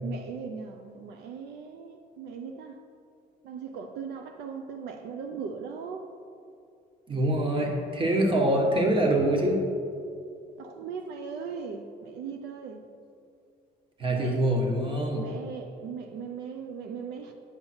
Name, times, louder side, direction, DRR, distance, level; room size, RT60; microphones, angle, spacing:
voice 1, 0.0-2.8 3.4-6.1 10.6-12.8 14.1-14.4 15.1-17.3, right 6 dB, 80° right, 5 dB, 0.6 m, -38 dB
voice 2, 7.1-9.6 14.0-15.2, right 1 dB, 30° right, 1 dB, 1.4 m, -24 dB
9.0 x 5.6 x 4.4 m, 2.4 s
cardioid pair, 110°, 17 cm